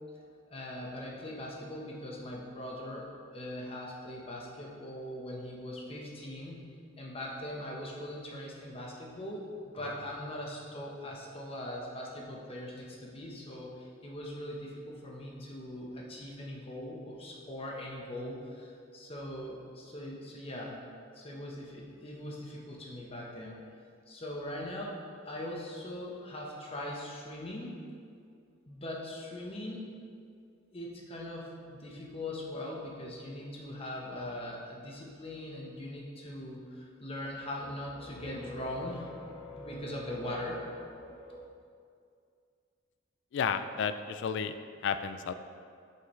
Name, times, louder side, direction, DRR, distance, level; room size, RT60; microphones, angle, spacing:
voice 1, 0.5-3.1 3.3-6.6 7.0-20.7 21.1-23.6 24.1-25.0 25.2-27.9 28.7-29.9 30.7-31.5 31.8-41.4, left 1 dB, 30° left, -2 dB, 1.0 m, -41 dB
voice 2, 43.3-44.6 44.8-45.3, left 6 dB, 65° left, 10 dB, 0.3 m, -32 dB
7.8 x 5.8 x 3.2 m, 2.3 s
head